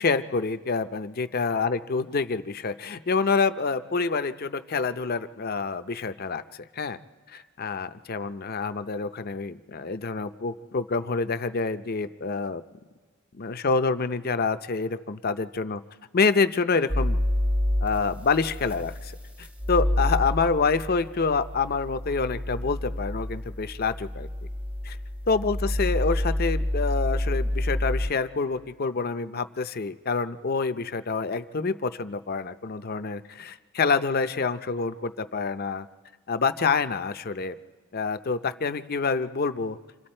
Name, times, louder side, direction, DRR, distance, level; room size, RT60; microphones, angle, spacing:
voice 1, 0.0-7.0 7.3-12.6 13.4-15.8 16.1-17.2 17.8-19.1 19.4-24.3 24.8-25.0 25.3-35.9 36.3-37.5 37.9-39.8, left 4 dB, 45° left, 10 dB, 0.6 m, -27 dB
sound 1, 16.9-28.1, left 1 dB, 5° right, 0.6 m, -28 dB
28.5 x 26.5 x 4.4 m, 1.5 s
head